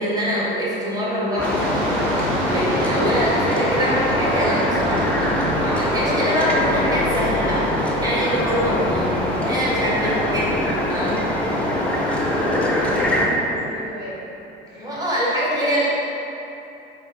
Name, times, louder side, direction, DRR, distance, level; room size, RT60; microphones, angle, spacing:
voice 1, 0.0-2.2 2.4-9.1 9.4-11.2 14.8-15.9, equal, 10° right, -7 dB, 1.2 m, -24 dB
sound 1, 1.4-13.3, left 1 dB, 5° left, 0.5 m, -22 dB
sound 2, 1.4-13.2, right 2 dB, 60° right, 0.6 m, -34 dB
voice 2, 12.2-14.2 14.6-14.9, equal, 35° right, -8 dB, 1.1 m, -33 dB
4.3 x 3.3 x 3.3 m, 2.9 s
figure-of-eight pair, 65°, 30 cm